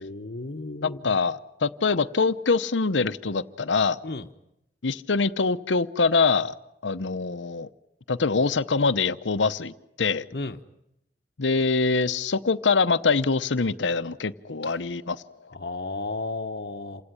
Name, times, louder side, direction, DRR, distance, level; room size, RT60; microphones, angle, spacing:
voice 1, 0.0-1.2 4.0-4.3 10.3-10.6 14.6-14.8 15.5-17.0, left 3 dB, 55° left, 1.1 m, -34 dB
voice 2, 0.8-4.0 4.8-6.5 6.8-7.7 8.1-10.3 11.4-15.2, left 4 dB, 85° left, 0.8 m, -24 dB
28.0 x 17.0 x 9.9 m
head